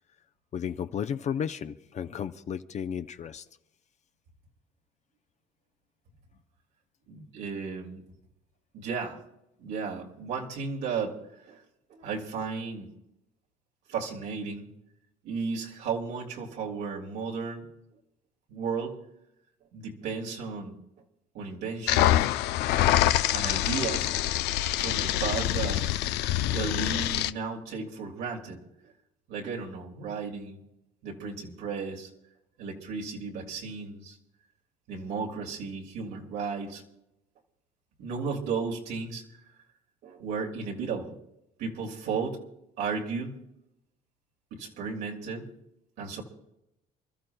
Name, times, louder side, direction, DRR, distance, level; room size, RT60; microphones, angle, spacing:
voice 1, 0.5-3.4, left 8 dB, 45° left, 10 dB, 0.6 m, -33 dB
voice 2, 7.1-8.0 8.7-9.2 9.6-11.2 11.5-11.6 11.9-12.9 13.9-14.7 15.2-17.7 18.5-19.0 19.7-20.8 21.3-22.3 23.3-24.1 24.8-25.9 26.5-28.6 29.3-30.6 31.0-32.1 32.6-34.2 34.9-36.8 38.0-39.2 40.0-41.1 41.6-42.4 42.8-43.4 44.5-45.5 46.0-46.2, right 5 dB, 85° right, -1 dB, 2.4 m, -34 dB
sound 1, 21.9-27.3, left 14 dB, 85° left, 0.5 m, -25 dB
28.5 x 13.0 x 2.2 m, 0.85 s
cardioid pair, 110°, 17 cm